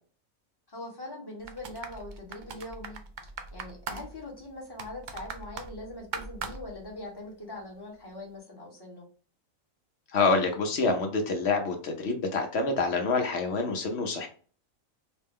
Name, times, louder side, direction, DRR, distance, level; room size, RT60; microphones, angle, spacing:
voice 1, 0.7-9.1, left 1 dB, 20° left, -1 dB, 1.1 m, -42 dB
sound 1, 1.4-7.3 7.6-7.7, right 4 dB, 70° right, 0.4 m, -41 dB
voice 2, 10.1-14.3, left 3 dB, 55° left, 4 dB, 0.9 m, -27 dB
4.1 x 2.2 x 3.5 m, 0.40 s
omnidirectional pair, 1.5 m